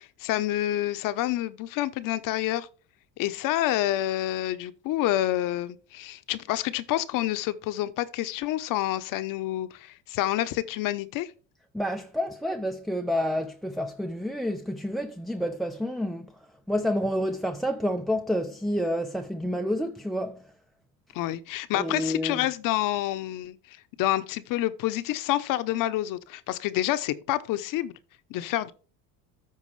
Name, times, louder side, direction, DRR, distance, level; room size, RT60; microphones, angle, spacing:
voice 1, 0.0-2.7 3.2-11.3 21.1-27.9 28.3-28.7, left 14 dB, 60° left, 0.8 m, -28 dB
voice 2, 11.7-16.3 16.7-20.5 21.7-22.5, equal, ahead, 0.4 m, -29 dB
14.0 x 4.7 x 3.2 m
supercardioid pair, 115°, 37 cm